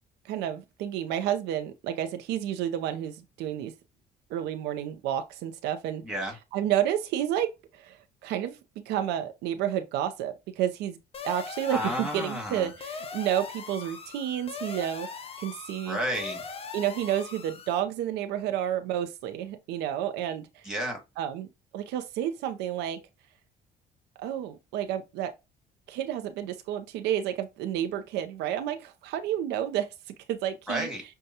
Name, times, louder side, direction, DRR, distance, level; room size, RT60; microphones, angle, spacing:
voice 1, 0.3-3.7 4.3-6.0 6.5-8.6 8.9-11.0 11.2-15.1 15.4-16.0 16.7-20.6 21.2-21.5 21.7-23.0 24.2-25.3 25.9-30.9, right 11 dB, 90° right, 0.6 m, -30 dB
voice 2, 6.0-6.4 11.7-12.7 15.9-16.4 20.6-21.0 30.7-31.0, equal, 5° right, 1.9 m, -31 dB
sound 1, 11.1-17.8, left 5 dB, 35° left, 0.6 m, -41 dB
6.5 x 2.3 x 2.8 m
cardioid pair, 110°, 17 cm